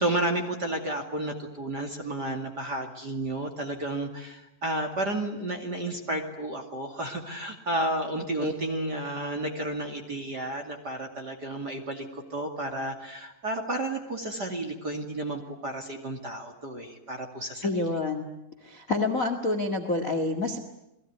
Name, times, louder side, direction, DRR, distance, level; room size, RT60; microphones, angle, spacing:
voice 1, 0.0-17.9, right 1 dB, 30° right, 4 dB, 2.1 m, -32 dB
voice 2, 17.6-18.3 18.6-20.6, left 2 dB, 40° left, 7 dB, 1.1 m, -27 dB
30.0 x 21.0 x 9.6 m, 0.87 s
omnidirectional pair, 5.0 m